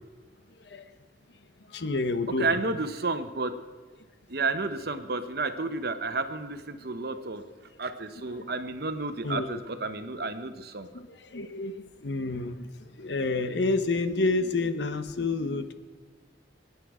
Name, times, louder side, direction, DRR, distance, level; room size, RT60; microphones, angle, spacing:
voice 1, 1.7-2.6 8.4-8.5 9.2-9.6 10.9-15.7, left 3 dB, 70° left, 10 dB, 0.9 m, -29 dB
voice 2, 2.4-3.5 4.3-7.4 7.8-10.9, right 3 dB, 55° right, 9 dB, 1.0 m, -31 dB
23.5 x 9.8 x 4.9 m, 1.5 s
head